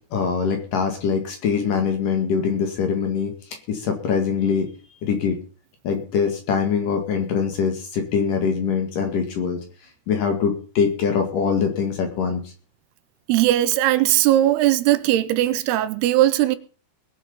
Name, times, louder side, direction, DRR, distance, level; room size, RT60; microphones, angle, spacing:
voice 1, 0.1-3.3 3.7-4.7 5.0-5.4 5.8-9.6 10.1-12.5, left 6 dB, 60° left, 3.2 m, -23 dB
voice 2, 13.3-16.6, right 14 dB, 85° right, 2.8 m, -19 dB
21.0 x 7.3 x 5.5 m
omnidirectional pair, 4.7 m